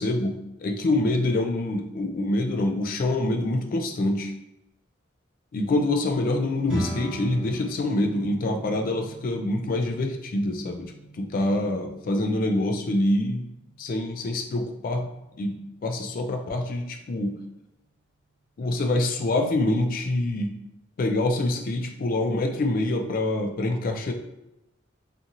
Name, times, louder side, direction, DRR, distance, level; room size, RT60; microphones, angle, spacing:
voice 1, 0.0-4.3 5.5-13.4 13.8-15.1 15.4-17.4 18.6-20.5 21.0-24.1, left 2 dB, 45° left, 4 dB, 0.3 m, -26 dB
sound 1, 6.7-16.1, equal, 5° right, 1.2 m, -40 dB
2.8 x 2.5 x 2.6 m, 0.92 s
head